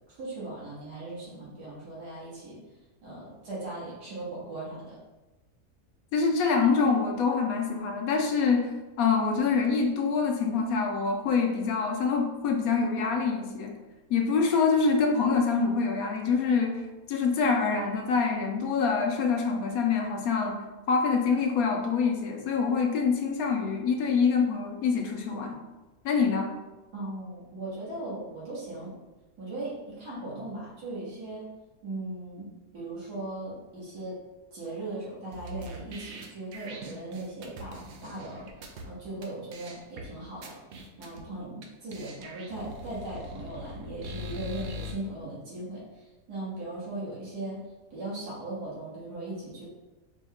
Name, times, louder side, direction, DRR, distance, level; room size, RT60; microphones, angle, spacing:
voice 1, 0.2-2.6 3.0-5.0 26.9-29.0 29.4-31.5 31.8-34.2 34.5-38.5 38.8-40.6 41.0-45.9 46.3-47.6 47.9-49.6, right 2 dB, 80° right, -7 dB, 2.0 m, -38 dB
voice 2, 6.1-8.7 9.0-13.8 14.1-20.6 20.9-25.6 26.0-26.5, left 5 dB, 70° left, 3 dB, 1.0 m, -25 dB
sound 1, 35.3-38.8 39.2-39.3 39.5-40.0 40.4-41.2 41.6-41.7 41.9-44.9, left 1 dB, 65° right, 0.7 m, -42 dB
5.2 x 2.2 x 3.4 m, 1.1 s
omnidirectional pair, 1.7 m